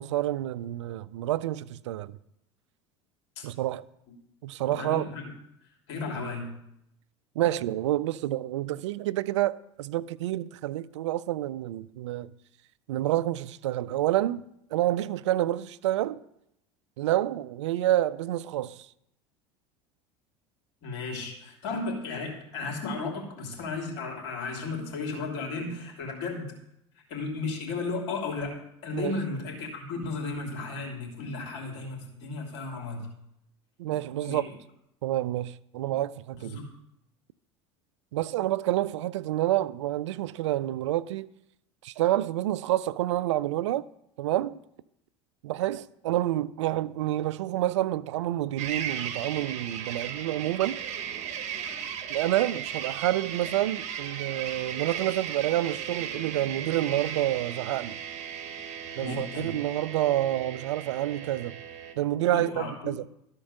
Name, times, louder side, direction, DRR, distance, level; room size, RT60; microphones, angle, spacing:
voice 1, 0.0-2.2 3.4-3.8 4.4-5.1 7.4-12.3 12.9-14.4 14.7-16.2 17.0-18.9 28.9-29.2 33.8-34.5 35.0-36.6 38.1-41.3 41.8-43.8 44.2-44.6 45.4-50.8 52.1-58.0 59.0-61.6 62.0-63.1, right 14 dB, 80° right, 0.4 m, -28 dB
voice 2, 4.8-5.3 5.9-6.5 20.8-26.5 27.1-33.1 34.2-34.4 35.8-35.9 36.4-36.7 59.0-59.5 62.3-62.9, left 3 dB, 70° left, 2.9 m, -34 dB
sound 1, 48.6-61.9, right 8 dB, 50° right, 1.2 m, -36 dB
13.0 x 4.4 x 6.4 m
hypercardioid pair, 85°, 15 cm